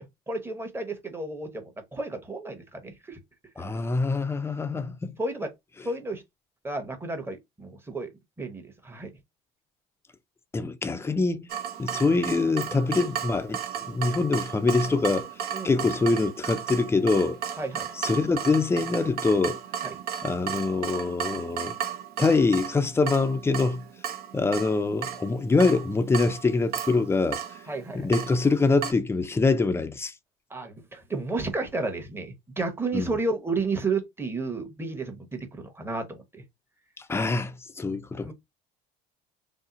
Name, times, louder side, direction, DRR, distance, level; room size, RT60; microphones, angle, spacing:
voice 1, 0.3-3.2 3.6-4.0 5.2-5.5 5.8-6.2 6.6-8.1 8.4-9.1 15.5-15.9 17.6-17.9 19.8-20.0 27.7-28.1 30.5-36.4 38.2-38.3, right 3 dB, 10° right, 0.9 m, -32 dB
voice 2, 3.6-5.1 10.5-11.5 11.8-13.6 13.9-15.3 15.6-17.4 18.0-19.6 20.2-21.7 22.2-23.8 24.3-27.4 27.9-30.1 32.9-33.2 37.1-38.3, left 3 dB, 15° left, 0.5 m, -24 dB
Water tap faucet / Drip, 11.5-28.9, right 9 dB, 55° right, 0.7 m, -35 dB
2.7 x 2.0 x 3.7 m
supercardioid pair, 90°, 19 cm